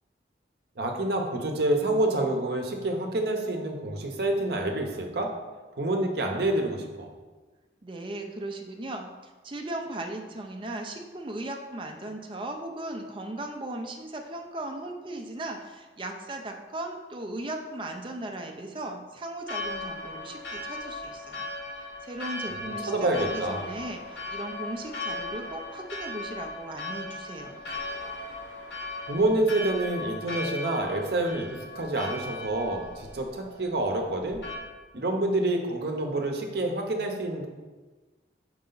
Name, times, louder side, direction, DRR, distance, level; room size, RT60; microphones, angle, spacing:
voice 1, 0.8-5.3 5.8-7.1 22.9-23.7 29.1-34.4 34.9-37.5, right 2 dB, 60° right, 3 dB, 0.8 m, -27 dB
voice 2, 7.8-27.6, right 1 dB, 30° right, 3 dB, 0.5 m, -37 dB
Church bell, 19.4-34.6, left 2 dB, 75° left, 1.4 m, -37 dB
5.4 x 4.7 x 3.9 m, 1.3 s
head